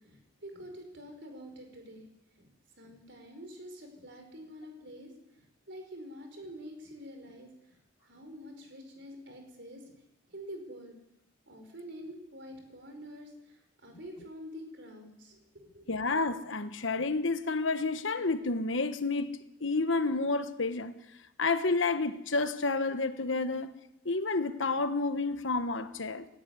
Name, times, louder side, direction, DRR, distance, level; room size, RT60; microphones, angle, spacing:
voice 1, 0.0-2.1 2.4-10.0 10.3-11.0 11.5-15.9, equal, 60° right, 5.2 m, -47 dB
voice 2, 15.9-20.9 21.4-23.7 24.0-26.3, left 3 dB, 70° left, 1.3 m, -30 dB
18.0 x 15.0 x 9.7 m
head